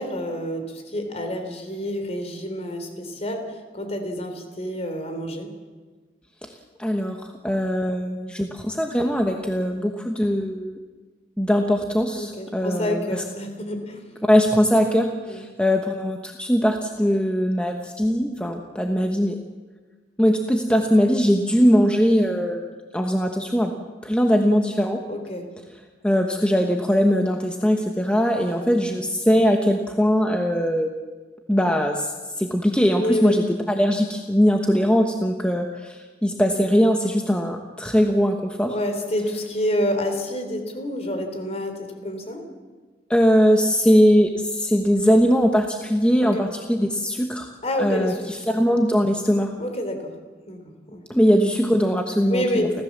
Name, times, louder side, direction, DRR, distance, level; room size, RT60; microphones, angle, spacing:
voice 1, 0.0-5.5 12.2-14.0 15.3-15.4 25.1-25.5 28.3-28.9 33.0-33.4 38.6-42.4 46.2-46.4 47.6-48.2 49.6-50.1 50.5-51.0 52.3-52.6, equal, 35° left, 6 dB, 3.6 m, -28 dB
voice 2, 6.8-10.8 11.4-13.2 14.2-19.4 20.2-22.6 22.9-23.7 24.0-25.0 26.0-30.9 31.5-38.8 43.1-47.5 47.8-49.5 51.1-52.7, equal, 5° left, 3 dB, 1.1 m, -21 dB
30.0 x 14.5 x 7.4 m, 1.4 s
head